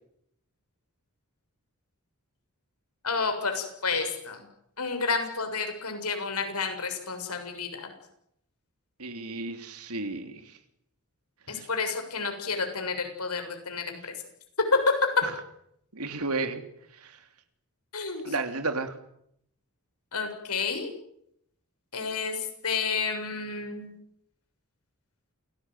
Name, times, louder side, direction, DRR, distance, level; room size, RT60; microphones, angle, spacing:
voice 1, 3.0-4.5 4.8-7.9 11.5-14.1 14.7-15.1 17.9-18.3 20.1-20.9 21.9-23.9, left 4 dB, 85° left, 6 dB, 7.0 m, -30 dB
voice 2, 9.0-10.6 11.6-11.7 15.2-15.3 15.9-16.6 16.9-17.2 18.2-18.9, right 3 dB, 80° right, 8 dB, 3.2 m, -33 dB
28.5 x 18.5 x 9.4 m, 0.75 s
head